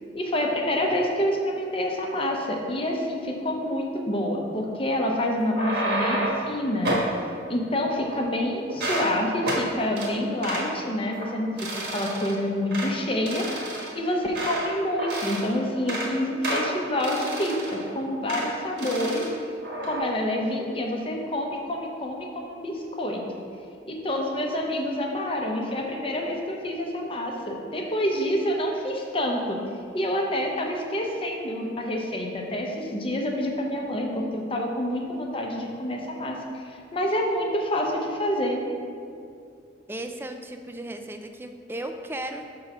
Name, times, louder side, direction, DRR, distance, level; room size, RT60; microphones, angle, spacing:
voice 1, 0.1-6.9 7.5-11.5 11.9-13.5 13.9-19.2 19.8-23.2 23.9-29.6 29.9-38.6, left 1 dB, 30° left, 1 dB, 0.7 m, -27 dB
sound 1, 5.4-6.5 6.8-7.1 7.8-8.4 8.7-9.1 9.4-9.6 10.0-10.1 10.4-10.7 11.1-11.3 11.6-12.3 12.7-12.9 13.3-14.7 15.0-15.5 15.8-16.1 16.4-17.8 18.3-18.5 18.8-19.3 19.6-20.0, right 1 dB, 65° right, 1.4 m, -30 dB
voice 2, 39.9-42.4, right 1 dB, 10° right, 6 dB, 0.3 m, -35 dB
5.5 x 3.9 x 5.9 m, 2.4 s
head